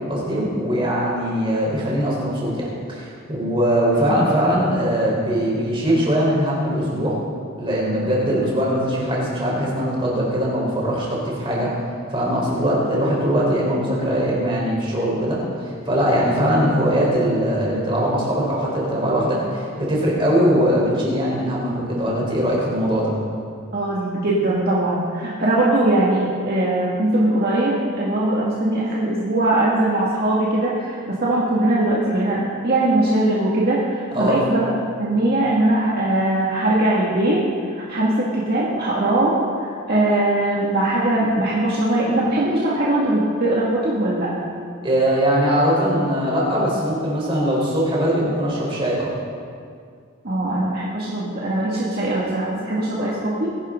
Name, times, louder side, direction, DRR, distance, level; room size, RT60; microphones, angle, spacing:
voice 1, 0.1-7.1 7.6-11.7 12.1-15.4 15.9-23.1 34.1-34.4 44.8-49.1, equal, 25° right, -5 dB, 4.2 m, -21 dB
voice 2, 23.7-34.7 35.0-37.4 37.8-44.5 50.2-53.5, right 1 dB, 45° right, -6 dB, 2.1 m, -21 dB
21.0 x 11.5 x 3.8 m, 2.2 s
head